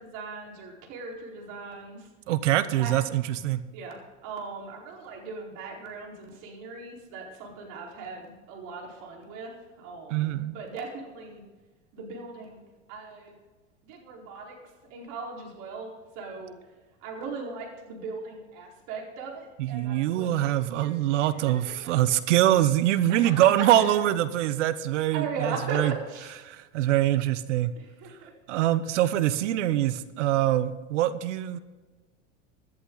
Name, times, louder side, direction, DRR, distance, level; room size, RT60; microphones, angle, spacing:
voice 1, 0.0-2.1 2.7-2.9 3.7-11.4 11.9-12.6 12.9-13.3 13.8-14.6 14.9-16.6 17.0-21.9 23.1-23.5 23.7-24.1 25.1-26.4 27.7-28.3, right 4 dB, 55° right, 0 dB, 4.6 m, -39 dB
voice 2, 2.3-3.6 10.1-10.5 19.6-25.9 26.4-27.7 28.5-31.6, right 13 dB, 75° right, 14 dB, 1.0 m, -24 dB
17.5 x 11.0 x 4.0 m, 1.2 s
hypercardioid pair, 110°, 36 cm